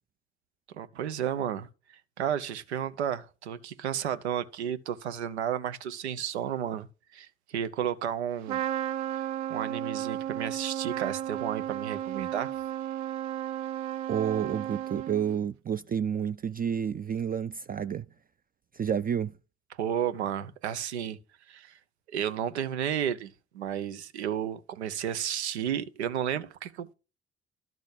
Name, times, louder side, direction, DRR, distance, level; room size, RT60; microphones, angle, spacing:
voice 1, 0.7-1.7 2.2-6.9 7.1-8.6 9.1-12.5 19.7-21.2 21.5-21.8 22.1-26.9, right 9 dB, 85° right, 0.7 m, -32 dB
Trumpet, 8.5-15.4, right 12 dB, 60° right, 0.9 m, -33 dB
voice 2, 14.1-18.1 18.7-19.3, right 8 dB, 25° right, 0.4 m, -30 dB
12.0 x 4.1 x 6.5 m
figure-of-eight pair, 45°, 32 cm